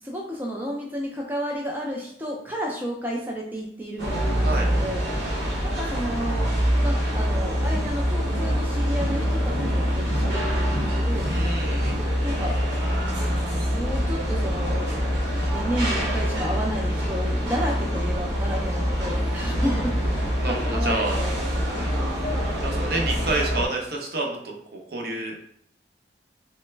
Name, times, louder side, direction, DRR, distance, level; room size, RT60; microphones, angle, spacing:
voice 1, 0.0-5.0 5.6-6.5 6.8-11.3 12.2-14.9 15.5-22.5, equal, 10° right, -2 dB, 0.3 m, -32 dB
sound 1, 4.0-23.7, equal, 85° right, 1.0 m, -25 dB
voice 2, 11.3-11.9 20.4-21.2 22.6-25.3, right 2 dB, 60° right, 0 dB, 0.6 m, -29 dB
sound 2, 13.9-23.4, left 1 dB, 60° left, 0.5 m, -39 dB
3.1 x 2.0 x 3.2 m, 0.67 s
head